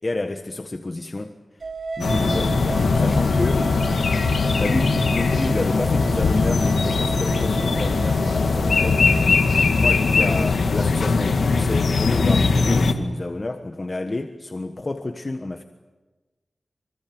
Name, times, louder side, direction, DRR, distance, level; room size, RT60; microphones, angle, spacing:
voice 1, 0.0-1.3 2.0-3.7 4.6-9.0 9.7-15.6, left 2 dB, 35° left, 6 dB, 1.4 m, -29 dB
sound 1, 1.6-9.3, right 3 dB, 70° right, 3.6 m, -34 dB
sound 2, 2.0-12.9, left 4 dB, 80° left, 1.9 m, -20 dB
25.5 x 25.0 x 8.0 m, 1.2 s
wide cardioid pair, 95°, 0 cm